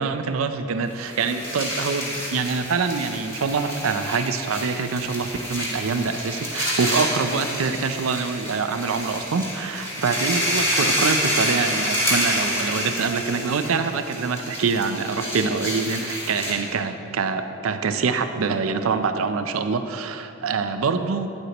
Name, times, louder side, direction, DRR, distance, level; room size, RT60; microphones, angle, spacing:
voice 1, 0.0-21.3, right 5 dB, 80° right, 9 dB, 0.5 m, -25 dB
sound 1, 0.9-16.7, equal, 15° left, 2.0 m, -28 dB
9.1 x 8.0 x 2.9 m, 2.6 s
head